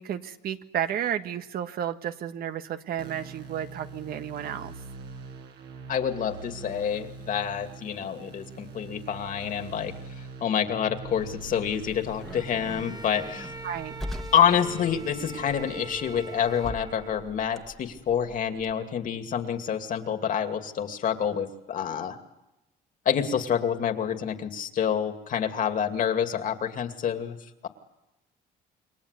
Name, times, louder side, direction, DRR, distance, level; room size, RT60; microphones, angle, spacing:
voice 1, 0.0-4.7 13.6-14.0, right 9 dB, 65° right, 8 dB, 1.5 m, -32 dB
sound 1, 3.0-14.0, right 4 dB, 80° right, 6.5 m, -43 dB
voice 2, 5.9-9.9 10.4-13.5 14.3-22.2 23.1-27.4, left 8 dB, 55° left, 7 dB, 2.5 m, -27 dB
Car, 11.0-18.7, left 1 dB, ahead, 1.7 m, -43 dB
Bowed string instrument, 12.2-17.5, right 3 dB, 25° right, 1.7 m, -42 dB
28.5 x 23.0 x 8.3 m, 0.95 s
cardioid pair, 110°, 17 cm